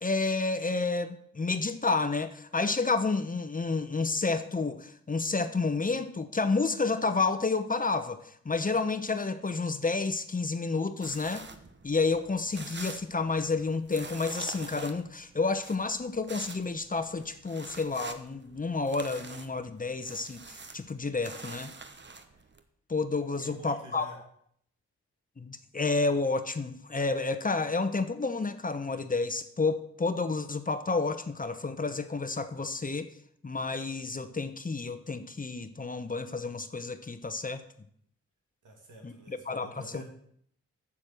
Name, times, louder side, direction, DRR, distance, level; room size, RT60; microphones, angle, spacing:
voice 1, 0.0-11.5 11.8-21.7 22.9-24.1 25.4-33.1 33.4-37.6 39.0-40.0, left 3 dB, 25° left, 10 dB, 0.9 m, -30 dB
sound 1, 11.0-22.6, right 4 dB, 35° right, 1.2 m, -46 dB
voice 2, 23.3-24.2 38.6-40.0, right 1 dB, 80° right, 1 dB, 2.6 m, -49 dB
7.4 x 7.3 x 6.7 m, 0.68 s
supercardioid pair, 45°, 30 cm